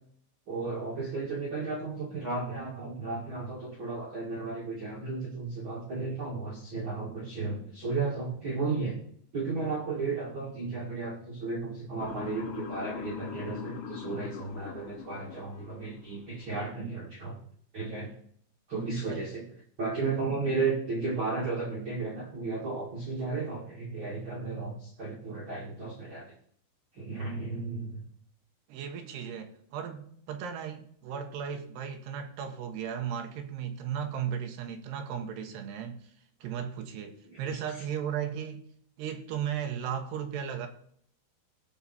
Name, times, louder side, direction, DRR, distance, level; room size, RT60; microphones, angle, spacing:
voice 1, 0.5-9.0 9.3-17.4 17.7-18.1 18.7-19.4 19.8-26.3 26.9-28.0 37.3-37.6, right 3 dB, 90° right, 1.1 m, -34 dB
Motor vehicle (road) / Siren, 12.0-16.1, left 9 dB, 80° left, 4.0 m, -42 dB
voice 2, 28.7-36.1 36.4-38.6 39.0-40.7, right 8 dB, 70° right, 2.8 m, -36 dB
18.0 x 6.6 x 4.3 m
omnidirectional pair, 5.8 m